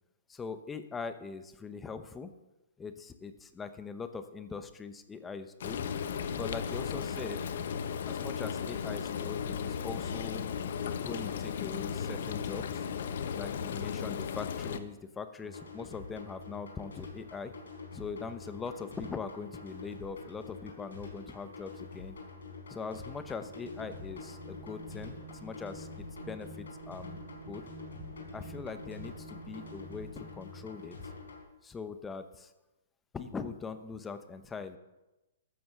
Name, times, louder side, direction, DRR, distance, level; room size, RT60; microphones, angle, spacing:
voice 1, 0.3-2.3 2.8-5.8 6.4-7.5 8.0-10.5 11.0-12.8 13.3-17.5 17.9-22.2 22.7-27.2 27.4-27.6 28.3-31.0 31.6-32.5 33.1-34.8, left 5 dB, 10° left, 10 dB, 0.9 m, -41 dB
Frying (food), 5.6-14.8, left 7 dB, 65° left, 1.0 m, -35 dB
sound 1, 15.4-31.4, left 4 dB, 80° left, 4.7 m, -47 dB
sound 2, 23.2-30.9, right 3 dB, 60° right, 2.2 m, -49 dB
13.5 x 7.7 x 6.7 m, 1.0 s
hypercardioid pair, 140°, 0 cm